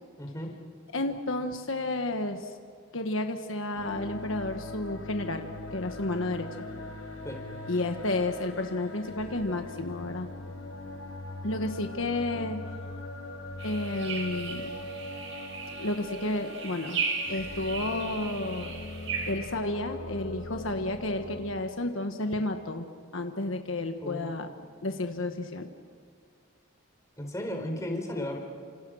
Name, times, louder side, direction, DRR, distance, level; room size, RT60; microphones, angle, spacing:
voice 1, 0.2-0.6 7.2-7.4 24.0-24.3 27.2-28.4, left 1 dB, 15° left, 3 dB, 4.0 m, -34 dB
voice 2, 0.9-2.6 2.9-5.5 5.7-6.5 7.7-10.3 11.4-12.6 13.6-14.7 15.7-17.0 17.3-18.7 19.3-22.9 23.1-24.5 24.8-25.7, left 2 dB, 65° left, 5 dB, 1.4 m, -31 dB
sound 1, 3.7-21.4, left 2 dB, 85° left, 4.4 m, -41 dB
sound 2, 13.6-19.3, right 5 dB, 65° right, 5.6 m, -36 dB
29.5 x 26.5 x 6.3 m, 2.1 s
head